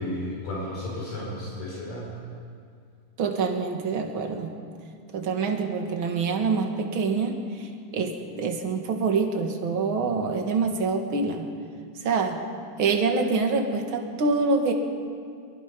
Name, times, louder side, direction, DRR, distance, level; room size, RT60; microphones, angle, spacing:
voice 1, 0.0-2.1, left 1 dB, 55° left, -5 dB, 6.3 m, -33 dB
voice 2, 3.2-4.5 5.1-11.5 12.0-12.4 12.8-14.7, right 4 dB, 45° right, 3 dB, 1.8 m, -26 dB
24.0 x 23.5 x 5.4 m, 2.2 s
omnidirectional pair, 4.7 m